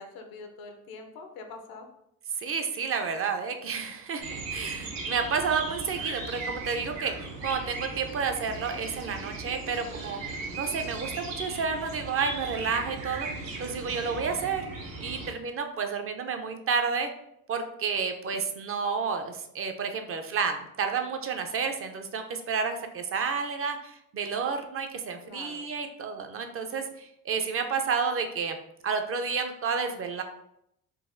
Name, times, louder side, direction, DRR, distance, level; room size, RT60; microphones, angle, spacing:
voice 1, 0.0-1.9 25.2-25.7, left 3 dB, 80° left, 4 dB, 0.7 m, -44 dB
voice 2, 2.4-14.6 15.0-17.1 17.5-28.6 28.8-30.2, right 5 dB, 40° right, 6 dB, 0.4 m, -30 dB
sound 1, 4.2-15.3, right 3 dB, 80° right, 0.7 m, -37 dB
3.9 x 2.3 x 2.5 m, 0.78 s
cardioid pair, 85°, 35 cm